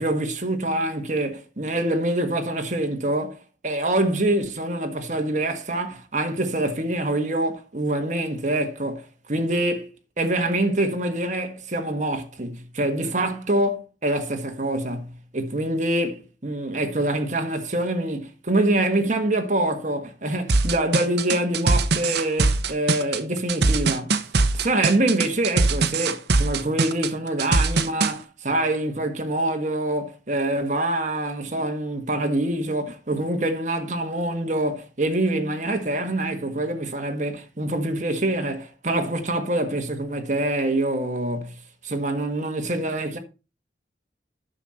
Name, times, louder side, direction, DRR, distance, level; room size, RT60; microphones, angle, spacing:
voice 1, 0.0-3.4 3.6-9.9 10.2-24.1 24.5-41.6 41.8-43.2, right 1 dB, 40° right, 1.5 m, -25 dB
sound 1, 20.5-28.1, right 3 dB, 60° right, 0.9 m, -21 dB
9.6 x 6.5 x 4.2 m
head